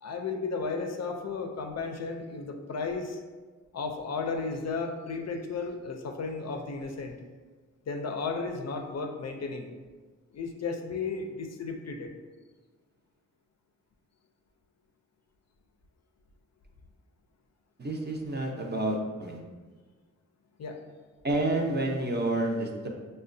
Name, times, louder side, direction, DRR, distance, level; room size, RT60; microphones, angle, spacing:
voice 1, 0.0-3.2 3.7-7.1 7.9-9.7 10.3-12.1 20.6-20.8, left 4 dB, 55° left, 4 dB, 0.4 m, -34 dB
voice 2, 17.8-19.4 21.2-22.9, right 2 dB, 35° right, 0 dB, 0.6 m, -29 dB
5.1 x 2.1 x 2.6 m, 1.3 s
cardioid pair, 80°, 32 cm